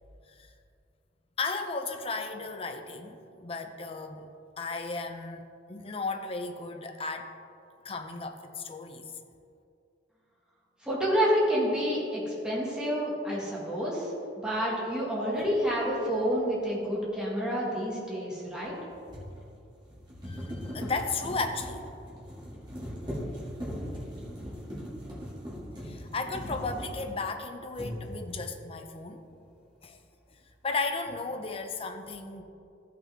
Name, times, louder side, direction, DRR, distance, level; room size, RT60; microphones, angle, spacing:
voice 1, 1.4-4.3 4.6-7.3 7.8-9.1 20.2-21.8 25.8-29.3 29.8-30.0 30.6-32.4, left 3 dB, 30° left, 5 dB, 0.7 m, -35 dB
voice 2, 10.8-14.1 14.4-18.7, equal, 5° right, -6 dB, 1.8 m, -28 dB
sound 1, 15.4-15.5 18.6-27.4 27.7-28.5, equal, 25° right, 2.4 m, -39 dB
14.5 x 5.8 x 3.6 m, 2.5 s
head